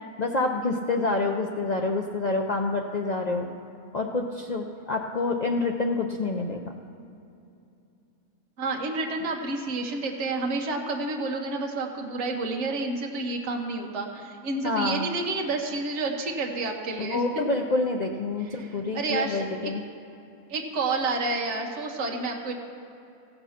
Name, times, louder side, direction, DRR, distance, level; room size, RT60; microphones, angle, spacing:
voice 1, 0.2-3.5 3.9-6.6 14.6-15.1 17.0-19.8, left 3 dB, 80° left, 2 dB, 0.3 m, -27 dB
voice 2, 8.6-17.4 18.4-18.7 18.9-19.7 20.5-22.5, right 3 dB, 55° right, 1 dB, 1.4 m, -29 dB
15.5 x 6.7 x 5.7 m, 2.7 s
omnidirectional pair, 1.5 m